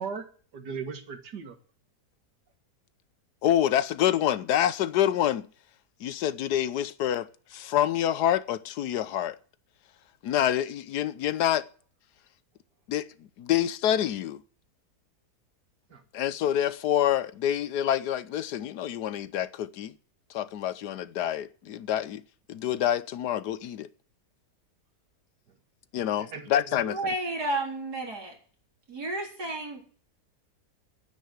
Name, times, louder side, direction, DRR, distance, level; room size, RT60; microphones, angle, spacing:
voice 1, 0.5-1.6 15.9-16.0 25.5-25.6 26.2-26.8, right 5 dB, 90° right, 2.4 m, -38 dB
voice 2, 3.4-5.5 6.0-9.4 10.2-11.7 12.9-13.1 13.4-14.4 16.1-19.9 20.3-22.2 22.5-23.9 25.9-27.0, left 11 dB, 80° left, 1.3 m, -27 dB
voice 3, 26.7-28.4 28.9-29.8, right 2 dB, 75° right, 4.4 m, -32 dB
9.9 x 9.8 x 8.0 m
omnidirectional pair, 1.7 m